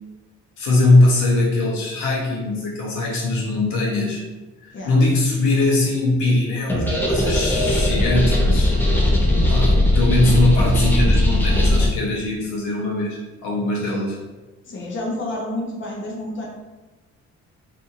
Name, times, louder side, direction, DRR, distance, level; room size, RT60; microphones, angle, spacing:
voice 1, 0.6-4.2 4.6-8.7 9.5-14.2, left 2 dB, 90° left, -4 dB, 0.9 m, -21 dB
sound 1, 6.7-11.9, left 1 dB, 5° left, 0.5 m, -18 dB
voice 2, 14.6-16.5, left 1 dB, 40° left, -2 dB, 0.7 m, -29 dB
2.6 x 2.6 x 2.5 m, 1.1 s
cardioid pair, 90°, 30 cm